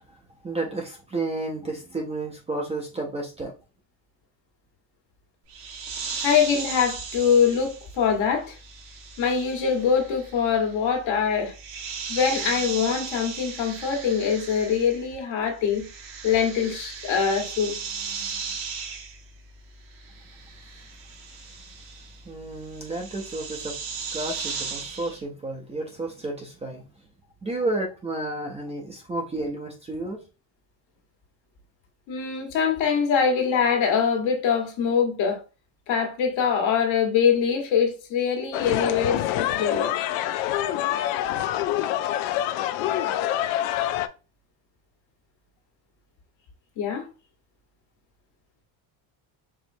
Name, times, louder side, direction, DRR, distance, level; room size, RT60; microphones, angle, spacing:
voice 1, 0.1-3.5 21.5-21.6 22.2-23.8 24.1-26.9 27.4-30.3, right 2 dB, 15° right, 0.4 m, -32 dB
sound 1, 5.5-15.2 15.5-25.2, right 5 dB, 90° right, 1.4 m, -37 dB
voice 2, 6.2-8.6 9.2-11.5 12.1-15.9 16.2-17.8 32.1-35.4 35.9-39.9 46.8-47.1, left 7 dB, 70° left, 1.4 m, -23 dB
sound 2, 38.5-44.1, left 12 dB, 85° left, 0.6 m, -26 dB
4.7 x 3.1 x 2.6 m
cardioid pair, 150°, 47 cm